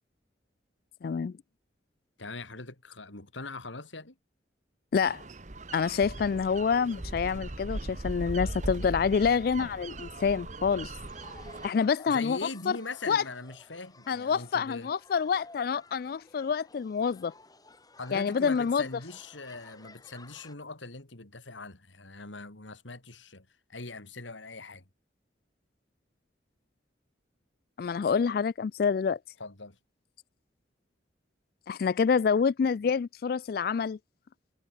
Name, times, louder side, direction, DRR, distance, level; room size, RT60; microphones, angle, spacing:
voice 1, 1.0-1.3 4.9-5.2 5.7-10.9 11.6-12.4 12.7-12.8 13.1-13.2 14.1-17.3 18.1-18.9 27.8-29.2 31.7-34.0, left 6 dB, 50° left, 0.3 m, -27 dB
voice 2, 2.2-4.1 12.1-14.9 18.0-23.4 23.7-24.8 29.4-29.8, left 3 dB, 90° left, 3.3 m, -41 dB
sound 1, 5.0-11.7, right 2 dB, 40° right, 1.3 m, -39 dB
sound 2, 11.1-20.5, left 3 dB, 20° left, 3.1 m, -55 dB
head